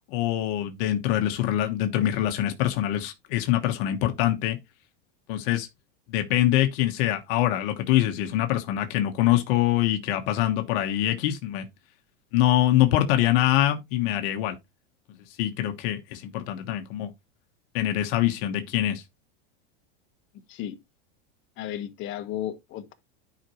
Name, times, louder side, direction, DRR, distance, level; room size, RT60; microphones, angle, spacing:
voice 1, 0.1-4.6 5.3-5.7 6.1-11.6 12.3-14.5 15.4-17.1 17.7-19.0, left 13 dB, 60° left, 1.3 m, -24 dB
voice 2, 21.6-22.9, left 11 dB, 40° left, 1.4 m, -34 dB
10.0 x 5.2 x 3.1 m
supercardioid pair, 140°, 31 cm